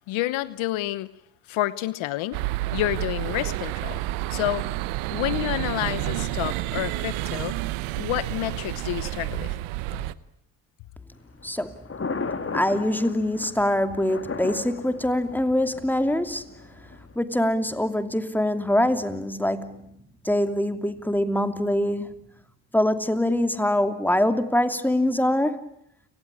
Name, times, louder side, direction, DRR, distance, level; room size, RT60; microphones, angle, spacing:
voice 1, 0.1-1.1 1.5-2.4 2.7-4.0 4.3-4.6 5.1-7.5 8.0-9.6, left 15 dB, 75° left, 16 dB, 1.1 m, -29 dB
sound 1, 2.3-10.1, right 17 dB, 85° right, 1.0 m, -30 dB
Thunder, 11.1-17.2, left 4 dB, 25° left, 2.4 m, -36 dB
voice 2, 12.5-16.5 17.2-19.8 20.2-22.2 22.7-25.6, left 1 dB, 5° left, 8 dB, 2.7 m, -24 dB
30.0 x 18.5 x 9.9 m, 0.79 s
supercardioid pair, 60°, 48 cm